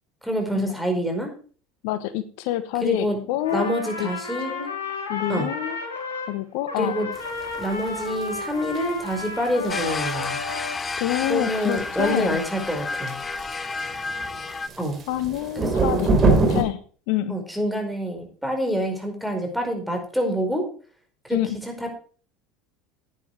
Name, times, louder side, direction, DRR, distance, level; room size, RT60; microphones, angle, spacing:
voice 1, 0.2-1.3 2.8-3.2 3.5-4.7 5.3-5.5 6.8-7.1 7.6-10.3 11.3-13.2 14.8-15.0 15.6-16.2 17.3-20.6 21.2-22.0, equal, ahead, 3 dB, 4.9 m, -27 dB
voice 2, 1.8-3.7 4.0-4.1 4.5-4.8 5.1-5.8 6.3-6.9 11.0-12.4 15.1-16.8 17.1-17.3 21.3-21.6, left 14 dB, 65° left, 12 dB, 1.0 m, -27 dB
Trumpet, 3.4-6.3 6.7-10.8, left 4 dB, 90° left, 3.8 m, -32 dB
sound 1, 7.1-16.6, right 3 dB, 35° right, 3.4 m, -26 dB
sound 2, 9.7-14.7, left 4 dB, 25° left, 0.9 m, -31 dB
10.5 x 9.7 x 4.6 m, 0.41 s
hypercardioid pair, 85°, 0 cm